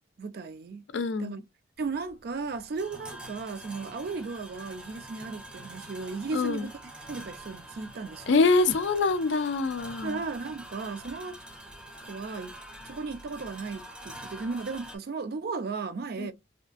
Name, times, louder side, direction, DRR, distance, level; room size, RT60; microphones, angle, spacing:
voice 1, 0.2-0.9 1.2-1.4 1.8-6.7 7.1-8.4 10.0-11.4 12.0-12.6 12.8-16.3, right 4 dB, 55° right, 0.4 m, -35 dB
voice 2, 0.9-1.4 6.3-6.7 8.3-10.2 16.2-16.3, left 3 dB, 75° left, 0.4 m, -25 dB
sound 1, 1.8-15.0, right 1 dB, 5° right, 0.5 m, -45 dB
2.7 x 2.5 x 2.3 m
head